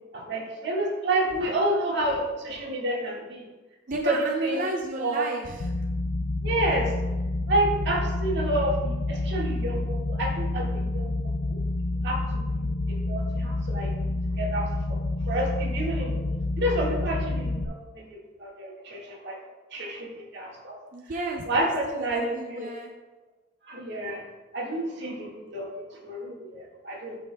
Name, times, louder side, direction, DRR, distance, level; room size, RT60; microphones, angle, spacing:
voice 1, 0.1-3.5 4.0-4.2 4.4-4.6 5.0-5.2 6.4-6.9 7.5-11.1 12.0-12.2 12.5-13.9 14.4-15.0 15.3-16.2 16.6-18.1 18.4-19.4 19.7-20.8 21.5-22.7 23.7-24.2 24.5-27.2, right 1 dB, 60° right, -2 dB, 1.7 m, -29 dB
voice 2, 3.9-5.7 20.9-22.9, right 2 dB, 40° right, 1 dB, 0.5 m, -33 dB
sound 1, 5.6-17.6, left 2 dB, 90° left, 0.5 m, -28 dB
11.5 x 5.6 x 2.2 m, 1.2 s
head